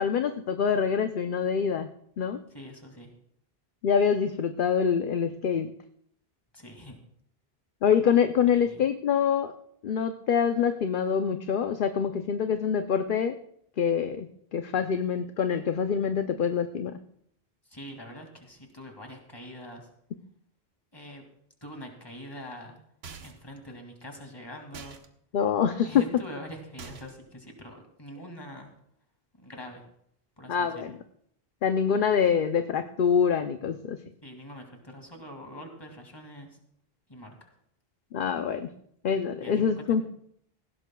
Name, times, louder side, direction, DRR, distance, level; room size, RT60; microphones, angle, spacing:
voice 1, 0.0-1.9 2.2-2.4 3.8-5.7 7.8-9.5 9.8-13.4 13.8-16.9 25.3-26.0 30.5-30.9 31.6-34.0 38.1-38.7 39.0-40.0, left 7 dB, 60° left, 7 dB, 0.8 m, -25 dB
voice 2, 2.5-3.1 6.5-7.0 8.5-8.9 17.6-19.9 20.9-21.2 21.6-22.8 23.2-25.0 25.8-28.7 29.3-29.8 30.4-30.8 34.2-36.6 37.1-37.5 39.4-40.0, equal, 25° left, 2 dB, 2.4 m, -44 dB
sound 1, 23.0-23.5 24.7-25.1 26.8-27.3, right 5 dB, 85° right, 1.2 m, -44 dB
18.5 x 16.0 x 2.3 m, 0.69 s
omnidirectional pair, 1.0 m